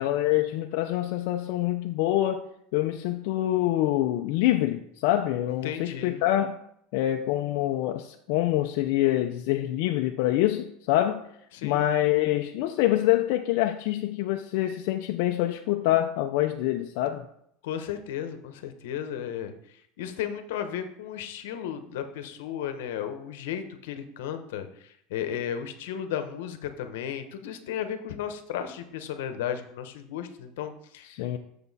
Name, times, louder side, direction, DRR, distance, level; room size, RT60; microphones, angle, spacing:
voice 1, 0.0-2.5 2.7-6.6 6.9-11.2 11.6-17.3 31.1-31.4, left 14 dB, 65° left, 0.5 m, -25 dB
voice 2, 5.6-6.2 11.5-11.8 17.6-19.5 20.0-31.1, left 9 dB, 80° left, 0.9 m, -34 dB
7.0 x 6.8 x 4.1 m
supercardioid pair, 145°, 0 cm